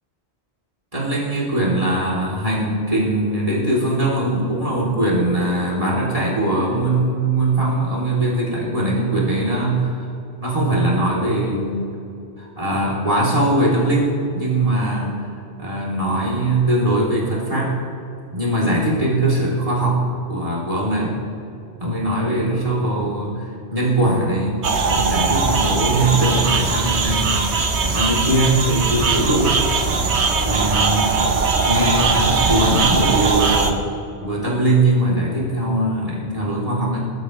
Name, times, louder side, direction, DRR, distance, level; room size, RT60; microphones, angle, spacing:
voice 1, 0.9-10.1 10.4-12.0 12.4-15.3 15.6-17.7 18.3-20.0 20.3-21.1 21.8-27.3 27.8-29.6 30.4-31.1 31.6-33.8 34.2-37.1, right 1 dB, 30° right, -5 dB, 3.1 m, -21 dB
sound 1, 24.6-33.7, right 4 dB, 75° right, 1.3 m, -20 dB
21.0 x 12.5 x 3.1 m, 2.7 s
omnidirectional pair, 1.1 m